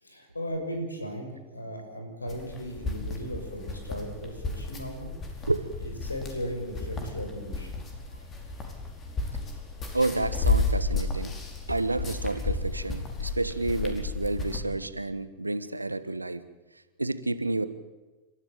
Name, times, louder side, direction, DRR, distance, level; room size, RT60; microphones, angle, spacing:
voice 1, 0.0-5.1 5.8-7.8, equal, 80° left, 4 dB, 6.5 m, -37 dB
sound 1, 2.3-14.6, left 3 dB, 25° left, 4.9 m, -32 dB
voice 2, 9.9-11.3 11.7-16.4 17.0-17.7, right 2 dB, 85° right, 13 dB, 1.3 m, -30 dB
30.0 x 14.0 x 8.9 m, 1.2 s
figure-of-eight pair, 90°, 0 cm